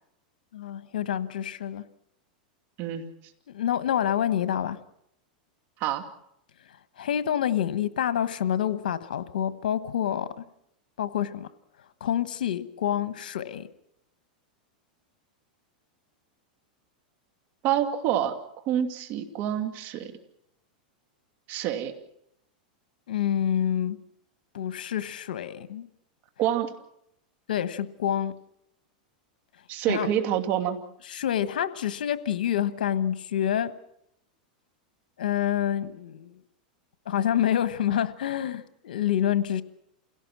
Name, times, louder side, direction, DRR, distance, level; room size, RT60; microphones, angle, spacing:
voice 1, 0.5-1.8 3.5-4.8 7.0-10.4 11.0-11.5 12.0-13.7 23.1-24.0 24.5-25.9 27.5-28.3 29.9-30.1 31.1-33.7 35.2-36.4 37.0-39.6, left 10 dB, 85° left, 13 dB, 1.2 m, -27 dB
voice 2, 17.6-18.4 18.7-20.1 21.5-21.9 26.4-26.7 29.7-30.8, right 10 dB, 45° right, 6 dB, 2.5 m, -27 dB
28.0 x 17.5 x 6.1 m, 0.75 s
supercardioid pair, 130°, 5 cm